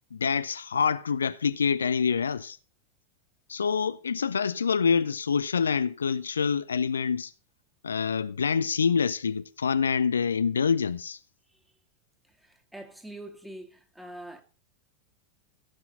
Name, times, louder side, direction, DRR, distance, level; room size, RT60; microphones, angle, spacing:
voice 1, 0.1-2.6 3.5-7.3 7.8-11.2, left 6 dB, 70° left, 0.6 m, -26 dB
voice 2, 12.2-14.4, right 1 dB, 5° right, 2.3 m, -44 dB
16.0 x 7.7 x 5.5 m
figure-of-eight pair, 90°, 0 cm